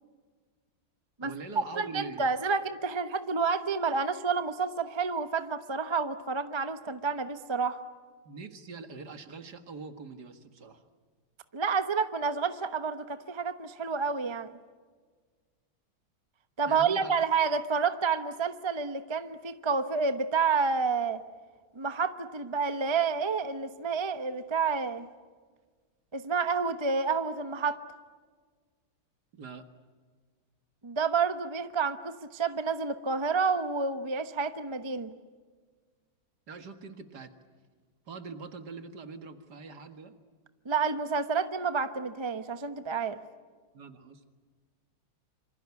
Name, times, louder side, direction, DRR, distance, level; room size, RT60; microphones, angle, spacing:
voice 1, 1.2-2.2 8.3-10.8 16.7-17.1 29.3-29.7 36.5-37.3 38.1-40.2 43.7-44.2, right 4 dB, 55° right, 8 dB, 2.3 m, -43 dB
voice 2, 1.7-7.8 11.5-14.5 16.6-21.2 21.7-25.1 26.1-27.8 30.8-35.1 40.6-43.2, right 5 dB, 25° right, 10 dB, 0.6 m, -29 dB
27.0 x 25.5 x 8.4 m, 1.5 s
omnidirectional pair, 2.2 m